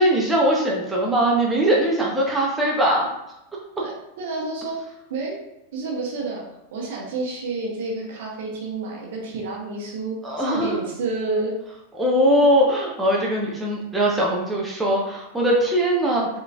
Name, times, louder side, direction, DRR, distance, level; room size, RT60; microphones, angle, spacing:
voice 1, 0.0-3.1 10.2-10.8 12.0-16.4, equal, 10° right, -3 dB, 0.8 m, -21 dB
voice 2, 3.7-5.4 5.7-6.4 6.7-11.5 12.4-12.5, right 3 dB, 55° right, -2 dB, 1.1 m, -29 dB
5.0 x 3.0 x 2.4 m, 0.86 s
figure-of-eight pair, 90°, 0 cm